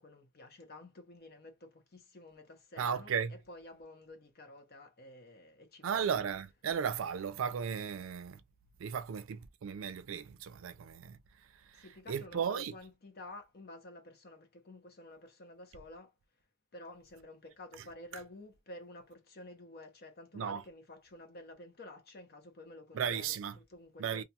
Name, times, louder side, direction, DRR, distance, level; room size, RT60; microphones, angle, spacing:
voice 1, 0.0-6.2 11.7-16.1 16.7-24.2, left 1 dB, 50° left, 0.8 m, -51 dB
voice 2, 2.8-3.3 5.8-8.4 8.8-11.2 11.7-12.7 20.3-20.6 22.9-23.5 24.0-24.2, right 7 dB, 80° right, 0.4 m, -35 dB
2.4 x 2.3 x 2.8 m
head